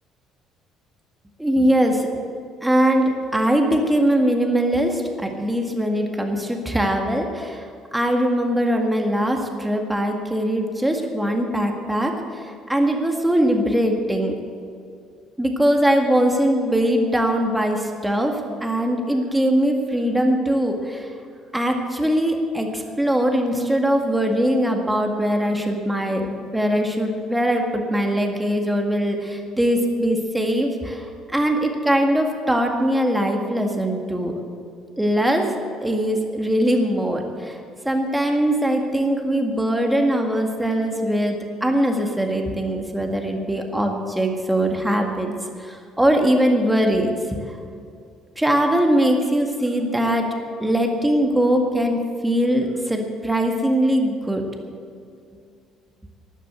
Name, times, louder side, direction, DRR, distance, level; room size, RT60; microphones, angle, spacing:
voice 1, 1.4-2.1 2.6-14.4 15.4-21.1 21.5-34.4 35.0-35.5 35.8-37.6 37.8-45.3 45.6-47.6 48.4-50.3 50.6-54.4, equal, 10° right, 3 dB, 2.0 m, -21 dB
13.0 x 11.5 x 8.1 m, 2.4 s
figure-of-eight pair, 50°, 0 cm